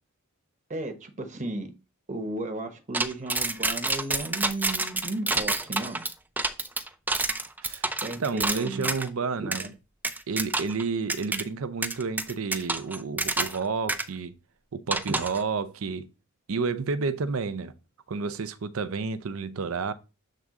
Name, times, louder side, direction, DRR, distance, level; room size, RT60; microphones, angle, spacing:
voice 1, 0.7-1.7 2.1-6.0 8.0-8.9 9.4-9.5 15.1-15.2, right 1 dB, 35° right, 1.0 m, -34 dB
sound 1, 2.9-9.1 9.5-9.7 10.0-10.8 11.1-11.4 11.8-13.6 13.9-14.0 14.9-15.4, right 2 dB, 10° right, 0.4 m, -28 dB
voice 2, 8.2-9.7 10.3-14.3 14.7-16.1 16.5-17.7 18.1-19.9, right 4 dB, 70° right, 0.6 m, -30 dB
7.7 x 3.6 x 3.7 m
head